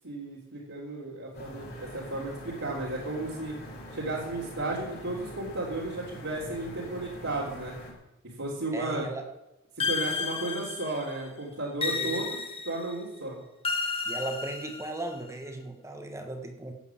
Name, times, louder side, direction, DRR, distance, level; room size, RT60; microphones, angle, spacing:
voice 1, 0.0-3.6 3.9-7.7 8.4-9.1 9.9-12.4 12.6-13.4, right 2 dB, 70° right, -6 dB, 3.6 m, -34 dB
sound 1, 1.3-7.9, equal, 45° left, 5.8 m, -44 dB
voice 2, 8.7-9.2 11.8-12.2 14.1-16.7, right 2 dB, 15° right, 4 dB, 1.7 m, -37 dB
sound 2, 9.8-11.1 11.8-12.9 13.6-15.2, left 4 dB, 25° left, 1.6 m, -32 dB
15.5 x 8.3 x 7.5 m, 0.94 s
head